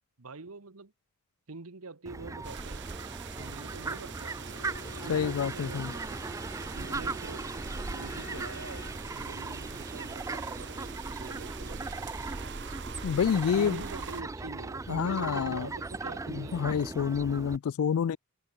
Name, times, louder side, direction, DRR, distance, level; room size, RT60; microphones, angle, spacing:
voice 1, 0.2-0.9 1.5-2.8 3.4-4.6 5.0-6.0 6.7-7.5 7.9-12.0 12.3-12.4 13.3-16.7, right 3 dB, 75° right, 1.3 m, -44 dB
Fowl, 2.1-17.6, right 3 dB, 15° right, 0.3 m, -39 dB
sound 1, 2.4-14.2, right 5 dB, 50° right, 1.1 m, -43 dB
Bowed string instrument, 4.3-9.1, left 3 dB, 45° left, 6.0 m, -49 dB
voice 2, 5.1-5.9 13.0-13.8 14.9-15.7 16.3-18.2, left 7 dB, 70° left, 0.3 m, -28 dB
head